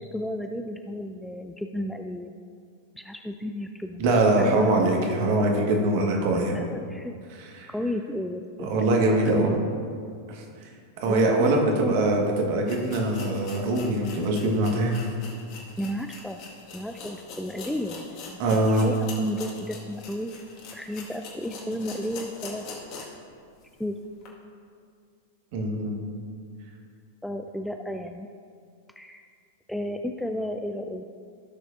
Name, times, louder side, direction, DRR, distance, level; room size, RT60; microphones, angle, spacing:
voice 1, 0.0-2.3 3.0-4.1 4.4-4.7 6.4-7.1 7.7-8.9 9.2-9.7 11.1-12.0 15.8-16.4 16.7-20.4 20.7-22.6 23.8-24.0 27.2-28.3 29.0-29.2 29.7-31.0, left 1 dB, ahead, 5 dB, 0.4 m, -33 dB
voice 2, 4.0-6.6 7.6-7.7 8.7-9.6 10.3-10.7 11.0-15.1 18.4-18.8 25.5-25.9, right 2 dB, 50° right, 1 dB, 1.6 m, -23 dB
sound 1, 12.1-12.2 12.6-23.3 23.6-23.7 24.2-24.3, left 4 dB, 45° left, 1.9 m, -43 dB
16.0 x 6.5 x 2.7 m, 2.2 s
figure-of-eight pair, 95°, 0 cm